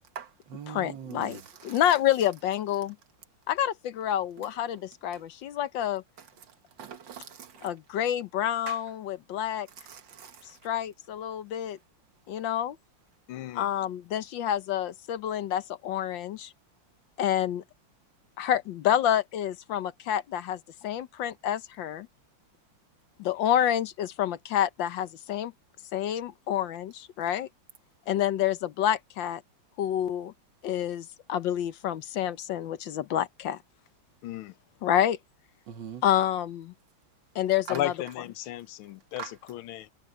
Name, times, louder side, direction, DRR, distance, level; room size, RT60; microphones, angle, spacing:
voice 1, 0.2-1.4 6.8-7.7 8.7-8.8 9.9-10.4 35.7-36.0 39.2-39.3, right 8 dB, 65° right, 1.9 m, -41 dB
voice 2, 0.7-3.0 3.5-6.0 7.6-9.7 10.6-11.8 12.3-12.8 13.5-16.5 17.2-17.6 18.4-22.1 23.2-25.5 25.9-27.5 28.1-29.4 29.8-30.3 30.6-33.6 34.8-35.2 36.0-36.7 37.3-37.9, left 11 dB, 70° left, 1.5 m, -28 dB
voice 3, 13.3-13.7 34.2-34.5 37.7-39.9, left 13 dB, 90° left, 1.6 m, -34 dB
omnidirectional pair, 2.2 m